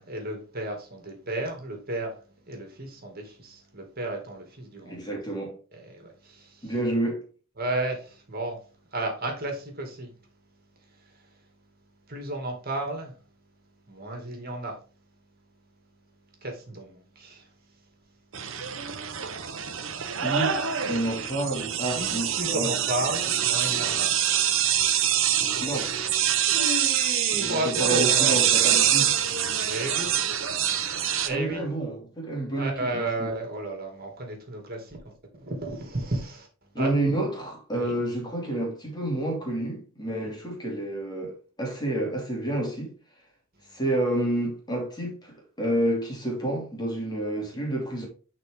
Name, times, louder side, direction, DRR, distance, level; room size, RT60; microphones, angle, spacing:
voice 1, 0.0-5.2 5.7-6.7 7.6-8.6 8.9-10.1 10.8-11.4 12.1-13.2 13.9-14.8 16.4-17.9 19.8-20.0 21.9-24.2 24.7-25.1 25.4-25.8 26.5-29.2 29.7-30.1 31.2-31.6 32.5-35.0 35.4-36.5 36.8-36.9 37.7-38.0 40.1-40.3, right 1 dB, 45° right, 2.4 m, -33 dB
voice 2, 4.9-5.6 6.6-7.2 20.2-22.8 25.4-25.9 27.3-29.1 31.3-33.4 36.7-42.9 43.7-48.1, right 1 dB, 20° left, 2.7 m, -29 dB
sound 1, 18.3-31.3, right 9 dB, 60° right, 1.0 m, -25 dB
11.0 x 4.3 x 3.7 m
head